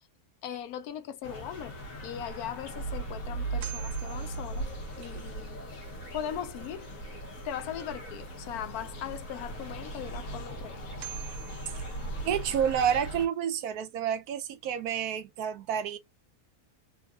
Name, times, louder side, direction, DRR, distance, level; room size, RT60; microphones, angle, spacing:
voice 1, 0.4-1.7 2.0-4.7 5.0-5.6 6.1-6.9 7.4-10.9, left 9 dB, 80° left, 1.1 m, -39 dB
sound 1, 1.2-13.3, right 2 dB, 65° left, 1.4 m, -38 dB
sound 2, 2.2-2.3 2.8-2.9 3.6-5.2 10.3-10.4 11.0-12.7, right 16 dB, 65° right, 0.8 m, -47 dB
voice 2, 12.2-16.0, right 8 dB, 85° right, 1.2 m, -29 dB
3.6 x 2.4 x 2.3 m
omnidirectional pair, 1.6 m